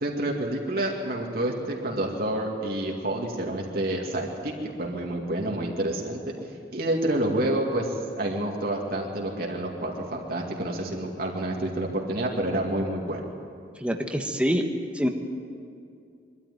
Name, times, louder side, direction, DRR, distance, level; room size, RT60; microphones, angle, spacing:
voice 1, 0.0-6.2 6.7-13.2, right 1 dB, 55° right, -1 dB, 2.3 m, -28 dB
voice 2, 13.8-14.6 14.9-15.1, equal, 5° right, 4 dB, 1.4 m, -25 dB
23.0 x 13.5 x 9.4 m, 2.4 s
head